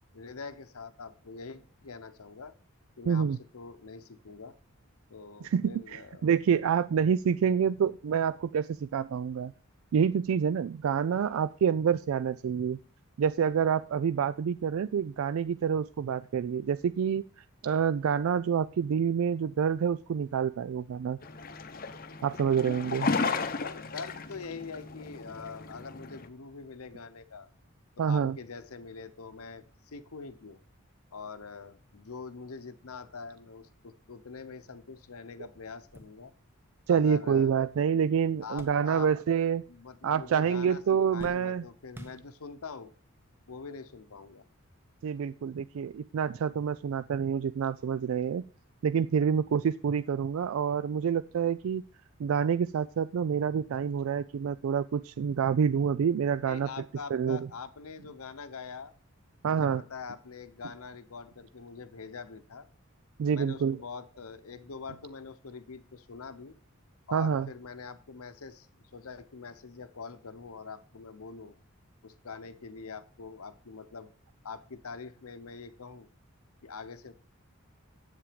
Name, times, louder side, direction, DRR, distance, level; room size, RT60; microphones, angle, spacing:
voice 1, 0.1-2.5 3.0-4.5 5.1-6.3 22.7-22.8 23.6-27.5 28.0-30.6 31.1-36.3 36.9-37.5 38.4-39.1 39.7-42.9 43.5-44.4 56.5-58.9 59.4-62.7 63.3-66.6 67.1-68.7 68.9-71.5 72.0-74.1 74.4-76.1 76.6-77.1, left 5 dB, 85° left, 12 dB, 0.8 m, -44 dB
voice 2, 3.1-3.4 5.4-9.5 9.9-12.8 13.2-21.2 22.2-23.1 28.0-28.4 36.9-39.6 40.0-41.6 45.0-48.4 48.8-51.8 52.2-56.7 57.1-57.4 59.4-59.8 63.2-63.8 67.1-67.5, right 7 dB, 70° right, 15 dB, 0.3 m, -27 dB
sound 1, 21.2-26.3, left 4 dB, 40° left, 0.8 m, -34 dB
sound 2, 35.6-39.4 39.7-40.4 40.7-42.7 43.5-43.6 44.9-45.0, right 1 dB, 10° right, 1.0 m, -52 dB
8.3 x 7.6 x 5.1 m, 0.42 s
head